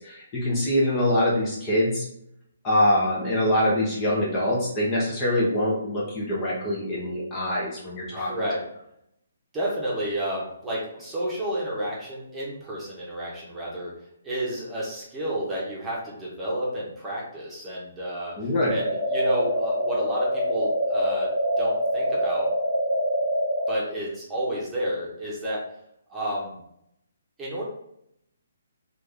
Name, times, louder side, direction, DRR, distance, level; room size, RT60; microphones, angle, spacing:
voice 1, 0.0-2.1 2.6-8.3 18.4-18.7, left 1 dB, 25° left, -6 dB, 1.0 m, -24 dB
voice 2, 8.1-8.6 9.5-13.9 14.2-21.3 21.6-22.5 23.7-25.6 26.1-26.6 27.4-27.6, right 1 dB, 10° right, -6 dB, 1.2 m, -31 dB
sound 1, 18.7-23.7, equal, 50° left, 1.2 m, -25 dB
3.4 x 2.6 x 3.4 m, 0.74 s
hypercardioid pair, 145°, 0 cm